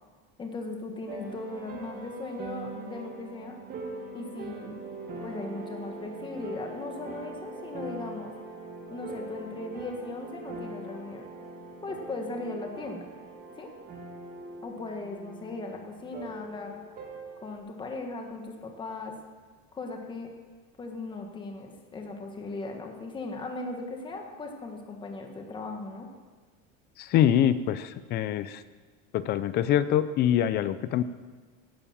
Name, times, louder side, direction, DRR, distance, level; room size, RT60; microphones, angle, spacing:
voice 1, 0.4-3.6 4.1-4.8 5.2-8.3 8.9-11.3 11.8-13.0 13.6-13.7 14.6-16.8 17.4-19.1 19.7-20.3 20.8-26.1, left 3 dB, 15° left, 3 dB, 1.5 m, -38 dB
sound 1, 1.1-17.6, right 2 dB, 25° right, 1.9 m, -42 dB
voice 2, 27.0-28.6 29.1-31.0, left 10 dB, 30° left, 14 dB, 0.5 m, -24 dB
17.0 x 10.5 x 7.3 m, 1.5 s
cardioid pair, 180°, 33 cm